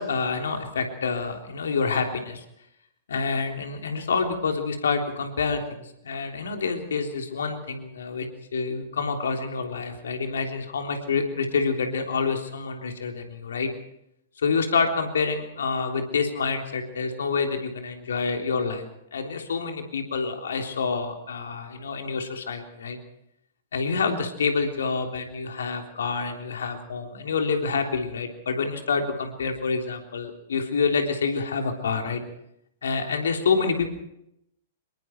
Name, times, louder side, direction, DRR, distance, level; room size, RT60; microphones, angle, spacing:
voice 1, 0.0-2.4 3.1-8.3 8.5-13.7 14.4-18.9 19.1-23.0 23.7-32.2 32.8-33.9, left 5 dB, 70° left, 4 dB, 3.5 m, -27 dB
26.5 x 22.5 x 4.6 m, 0.79 s
figure-of-eight pair, 105°, 0 cm